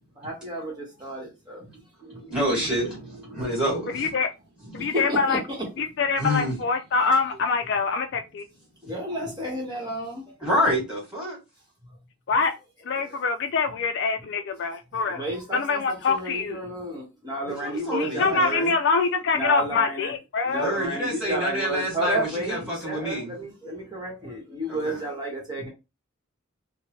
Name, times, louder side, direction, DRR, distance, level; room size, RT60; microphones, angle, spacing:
voice 1, 0.2-1.7 2.1-2.2 2.6-2.8 4.8-5.7 6.2-6.3 7.2-7.3 8.8-10.9 11.9-12.0 12.3-13.2 13.6-13.8 14.2-14.3 14.9-18.6 19.3-20.1 20.4-25.7, right 1 dB, 20° right, 1.0 m, -32 dB
voice 2, 2.0-4.1 4.6-4.9 6.2-6.5 10.4-11.4 17.6-18.7 20.5-23.3 24.7-25.0, equal, 5° right, 1.8 m, -28 dB
voice 3, 3.9-4.3 4.7-5.4 5.8-8.4 12.3-12.5 12.8-15.2 15.5-16.6 17.9-20.7, left 4 dB, 55° left, 0.3 m, -24 dB
3.3 x 2.1 x 3.1 m
head